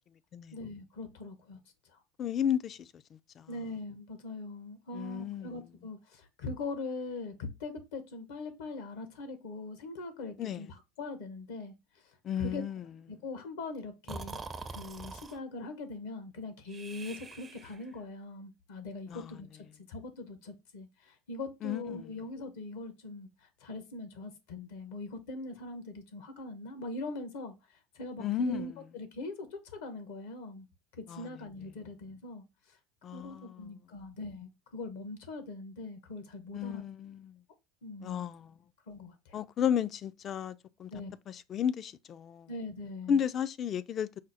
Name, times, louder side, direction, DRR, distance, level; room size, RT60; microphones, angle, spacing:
voice 1, 0.5-1.6 1.9-2.0 3.5-11.7 12.4-12.6 13.1-14.4 14.7-27.5 27.9-30.7 31.0-32.4 33.1-36.8 37.8-38.2 38.9-39.4 40.9-41.1 42.5-43.2, left 2 dB, 80° left, 0.8 m, -41 dB
voice 2, 2.2-3.5 4.9-5.5 10.4-10.7 12.2-12.8 19.1-19.4 21.6-22.1 28.2-28.7 31.1-31.3 33.0-33.7 36.5-37.4 38.0-38.5 39.3-40.9 41.3-42.5 43.1-44.1, left 9 dB, 45° left, 0.3 m, -33 dB
Breathing, 14.1-15.4 16.7-17.9, right 3 dB, 25° right, 0.5 m, -44 dB
4.9 x 2.0 x 4.0 m
hypercardioid pair, 85°, 0 cm